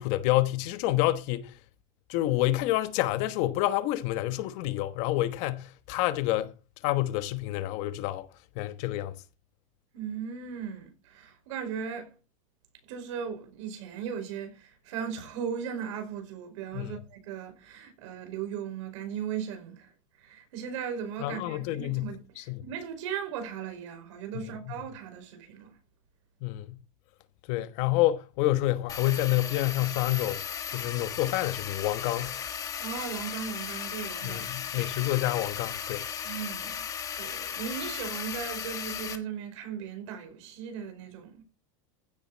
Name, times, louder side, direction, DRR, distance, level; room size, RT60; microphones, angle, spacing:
voice 1, 0.0-1.5 2.1-6.5 6.8-8.3 8.5-9.1 16.7-17.0 21.2-22.1 22.4-22.6 24.4-24.5 26.4-26.8 27.5-32.4 34.2-36.0, left 15 dB, 45° left, 1.2 m, -28 dB
voice 2, 9.9-12.1 12.9-19.9 20.2-25.8 32.8-34.6 36.2-36.9 37.2-41.4, right 7 dB, 65° right, 5.3 m, -37 dB
sound 1, 28.9-39.2, left 8 dB, 20° left, 1.3 m, -36 dB
15.5 x 8.0 x 4.1 m
supercardioid pair, 170°, 17 cm